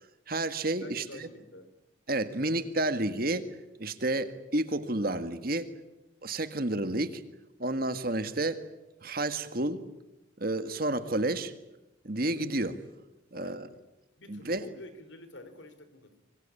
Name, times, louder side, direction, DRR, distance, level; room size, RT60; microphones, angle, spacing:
voice 1, 0.3-1.3 2.1-3.5 3.8-5.7 6.2-7.2 7.6-8.6 9.0-9.8 10.4-11.5 12.0-12.8 13.3-13.7 14.3-14.6, right 2 dB, 50° right, 10 dB, 1.8 m, -30 dB
voice 2, 0.8-1.7 13.3-13.7 14.2-16.2, left 1 dB, 70° left, 11 dB, 3.9 m, -48 dB
26.0 x 25.0 x 8.6 m, 0.97 s
head